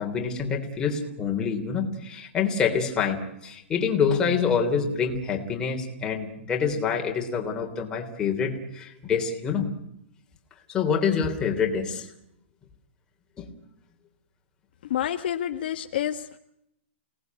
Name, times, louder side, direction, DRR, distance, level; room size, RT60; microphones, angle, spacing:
voice 1, 0.0-9.7 10.7-12.1 13.4-13.5, left 6 dB, 10° left, 2 dB, 3.4 m, -26 dB
voice 2, 14.9-16.4, left 10 dB, 50° left, 6 dB, 1.4 m, -28 dB
29.5 x 19.0 x 9.5 m, 0.80 s
hypercardioid pair, 170°, 7 cm